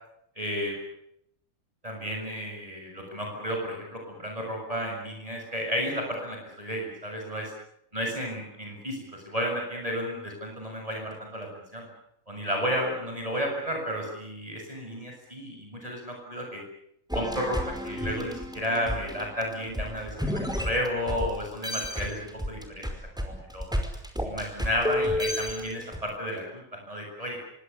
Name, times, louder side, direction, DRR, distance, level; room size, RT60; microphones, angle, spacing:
voice 1, 0.4-0.8 1.8-7.5 7.9-11.9 12.3-16.6 17.1-22.2 22.4-22.9 23.2-23.7 24.2-27.4, equal, 25° right, 0 dB, 7.3 m, -32 dB
sound 1, 17.1-21.3 21.6-26.0, left 1 dB, 5° right, 5.3 m, -31 dB
26.5 x 24.5 x 7.0 m, 0.75 s
omnidirectional pair, 1.5 m